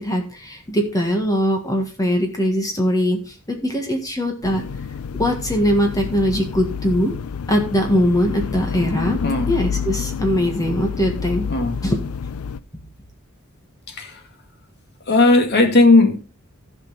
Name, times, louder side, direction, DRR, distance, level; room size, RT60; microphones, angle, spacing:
voice 1, 0.0-4.6 5.2-7.1 7.5-9.2 9.5-11.5 11.8-12.0, equal, 15° left, 3 dB, 1.6 m, -21 dB
sound 1, 4.4-12.6, left 6 dB, 80° left, 0.4 m, -28 dB
voice 2, 9.2-9.5 11.5-11.8 13.9-14.2 15.1-16.2, left 2 dB, 50° left, 5 dB, 2.0 m, -16 dB
15.5 x 5.3 x 4.1 m, 0.32 s
head